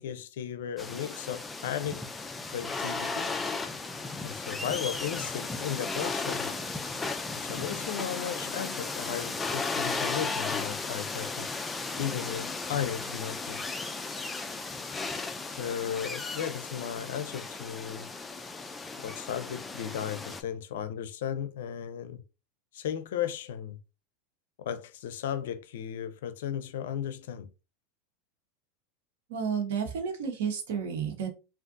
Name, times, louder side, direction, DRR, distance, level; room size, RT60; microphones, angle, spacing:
voice 1, 0.0-2.0 2.5-3.3 4.2-6.5 7.3-11.5 12.0-13.6 15.6-18.1 19.0-22.2 22.7-23.8 24.6-27.5, left 9 dB, 80° left, 0.5 m, -35 dB
sound 1, 0.8-20.4, left 3 dB, 10° left, 0.3 m, -35 dB
voice 2, 29.3-31.3, right 6 dB, 75° right, 1.0 m, -31 dB
3.6 x 2.4 x 2.6 m
supercardioid pair, 130°, 0 cm